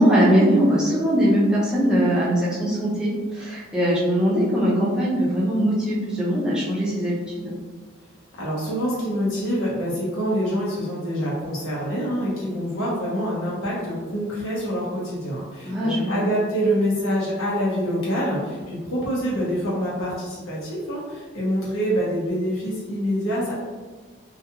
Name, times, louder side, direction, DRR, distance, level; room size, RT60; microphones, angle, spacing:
voice 1, 0.0-7.5 15.6-16.2, equal, 5° right, -7 dB, 0.5 m, -21 dB
voice 2, 8.4-23.5, equal, 85° left, -7 dB, 0.8 m, -26 dB
2.3 x 2.3 x 2.8 m, 1.4 s
head